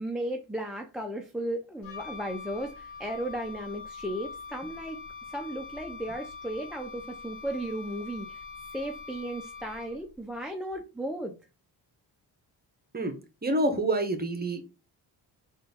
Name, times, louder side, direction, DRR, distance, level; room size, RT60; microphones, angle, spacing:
voice 1, 0.0-5.0 5.3-8.4 8.7-11.3, right 1 dB, ahead, 2 dB, 0.5 m, -35 dB
Wind instrument woodwind instrument, 1.8-10.2, left 5 dB, 70° left, 1.1 m, -43 dB
voice 2, 13.4-14.6, right 2 dB, 20° right, 6 dB, 1.0 m, -27 dB
3.7 x 2.6 x 3.8 m, 0.30 s
cardioid pair, 85°, 46 cm